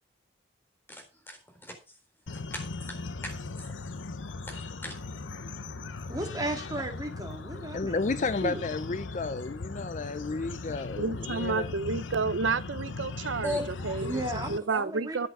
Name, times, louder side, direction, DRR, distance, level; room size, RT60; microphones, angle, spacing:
voice 1, 0.9-1.4 1.7-1.8 2.5-3.0 3.2-3.7 4.5-5.0 13.4-14.2, left 2 dB, 10° left, 4.1 m, -38 dB
sound 1, 2.3-14.6, left 3 dB, 90° left, 0.8 m, -38 dB
voice 2, 6.1-8.7 14.0-15.3, right 1 dB, 20° right, 1.9 m, -35 dB
voice 3, 7.7-11.7, left 3 dB, 40° left, 0.5 m, -32 dB
voice 4, 11.0-13.6 13.8-15.3, right 4 dB, 85° right, 0.7 m, -30 dB
10.5 x 8.3 x 5.4 m
head